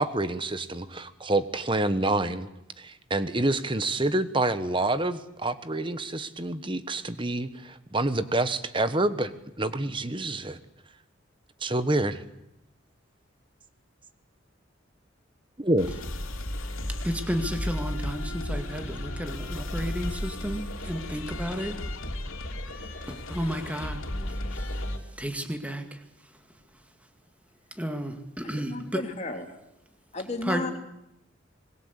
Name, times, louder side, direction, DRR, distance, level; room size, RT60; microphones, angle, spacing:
voice 1, 0.0-2.5 2.8-9.3 9.6-10.6 11.6-12.2 15.6-15.9, right 2 dB, 25° right, 12 dB, 1.3 m, -27 dB
sound 1, 15.8-25.0, left 1 dB, 85° left, 3.3 m, -34 dB
voice 2, 16.9-21.7 22.7-24.7 25.2-26.0 27.7-29.0 30.4-30.6, equal, 5° right, 6 dB, 2.1 m, -33 dB
voice 3, 28.6-29.4 30.1-30.7, left 2 dB, 35° left, 2 dB, 3.3 m, -33 dB
26.5 x 21.5 x 8.3 m, 0.85 s
head